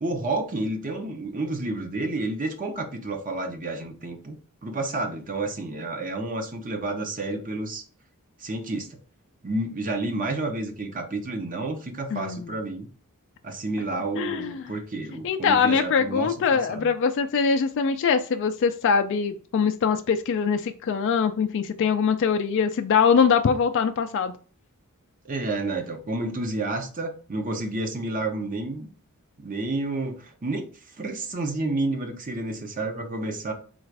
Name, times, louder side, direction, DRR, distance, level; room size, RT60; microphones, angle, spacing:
voice 1, 0.0-7.8 8.4-8.9 9.4-12.9 13.4-16.9 25.2-28.9 29.4-30.7 31.0-33.5, right 2 dB, 40° right, 4 dB, 0.8 m, -30 dB
voice 2, 12.1-12.5 14.2-14.7 15.2-24.3, left 6 dB, 55° left, 6 dB, 0.3 m, -23 dB
3.9 x 2.4 x 4.6 m, 0.39 s
head